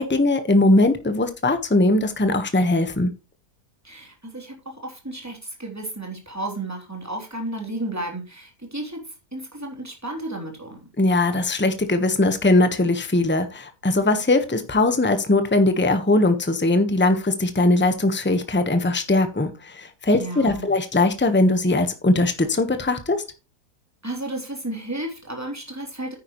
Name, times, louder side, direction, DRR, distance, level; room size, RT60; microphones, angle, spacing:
voice 1, 0.0-3.1 11.0-23.2, left 2 dB, 10° left, 8 dB, 1.1 m, -20 dB
voice 2, 3.8-10.8 20.1-20.7 24.0-26.2, right 1 dB, 10° right, 1 dB, 3.3 m, -33 dB
9.7 x 9.6 x 3.1 m, 0.29 s
omnidirectional pair, 1.7 m